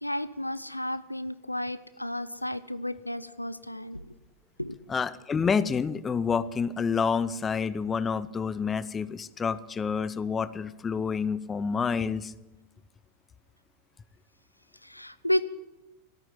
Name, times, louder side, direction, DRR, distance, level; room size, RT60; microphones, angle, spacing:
voice 1, 0.0-4.1 4.6-4.8 14.8-15.4, left 1 dB, 85° left, 15 dB, 0.5 m, -32 dB
voice 2, 4.9-12.3, left 6 dB, 20° left, 17 dB, 0.5 m, -28 dB
13.5 x 9.1 x 7.4 m, 1.0 s
figure-of-eight pair, 90°, 0 cm